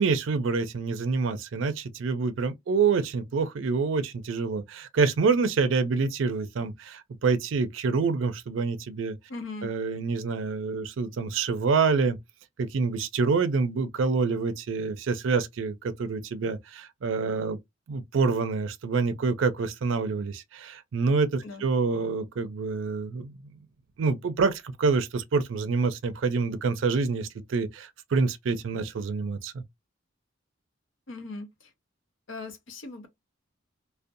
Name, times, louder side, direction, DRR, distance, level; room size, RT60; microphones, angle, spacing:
voice 1, 0.0-9.2 9.6-12.2 12.6-17.6 17.9-23.3 24.0-29.6, right 4 dB, 80° right, 0.4 m, -27 dB
voice 2, 9.3-9.7 21.4-21.6 31.1-31.7 32.3-33.1, left 3 dB, 80° left, 0.7 m, -39 dB
2.6 x 2.1 x 2.5 m
head